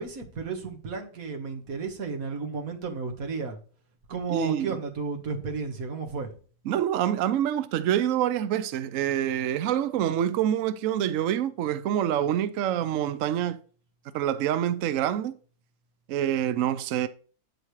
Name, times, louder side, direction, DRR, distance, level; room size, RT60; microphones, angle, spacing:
voice 1, 0.0-3.6 4.1-6.4, right 5 dB, 50° right, 1.8 m, -33 dB
voice 2, 4.3-4.8 6.7-13.6 14.1-15.4 16.1-17.1, right 10 dB, 75° right, 0.7 m, -26 dB
9.2 x 8.5 x 3.2 m
omnidirectional pair, 2.0 m